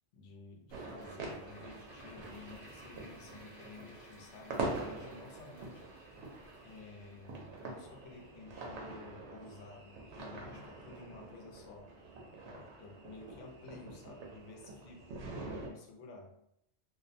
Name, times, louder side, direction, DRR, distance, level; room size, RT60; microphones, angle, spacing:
voice 1, 0.1-5.8 6.6-11.9 12.5-16.4, left 3 dB, 80° left, 0 dB, 0.9 m, -52 dB
sound 1, 0.7-11.2 11.6-11.7, equal, 45° right, 0.9 m, -60 dB
sylvester newyear fireworks close launching rocket echoing, 0.7-15.7, right 2 dB, 80° right, 0.9 m, -45 dB
2.5 x 2.1 x 2.5 m, 0.74 s
omnidirectional pair, 1.2 m